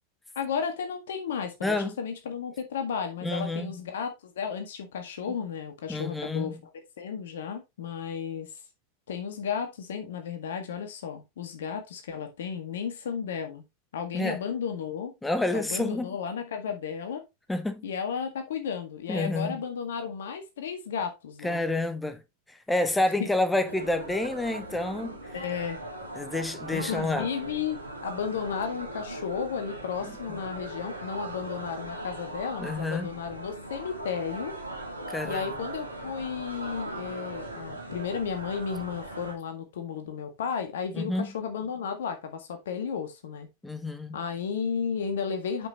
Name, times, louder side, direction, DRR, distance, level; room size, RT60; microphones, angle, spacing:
voice 1, 0.3-6.6 7.0-8.5 9.1-13.6 13.9-15.1 15.5-17.2 17.8-21.6 23.2-23.3 25.3-25.8 26.7-34.5 35.2-43.5 44.1-45.7, left 7 dB, 60° left, 1.7 m, -33 dB
voice 2, 3.2-3.7 5.9-6.5 14.1-14.4 15.2-16.1 17.5-17.8 19.1-19.6 21.4-22.2 22.7-25.1 26.2-27.3 32.6-33.1 35.1-35.5 40.9-41.3 43.6-44.2, left 2 dB, 5° left, 0.9 m, -28 dB
sound 1, 23.7-39.3, right 1 dB, 85° right, 2.2 m, -39 dB
7.8 x 5.7 x 2.9 m
figure-of-eight pair, 90°, 0 cm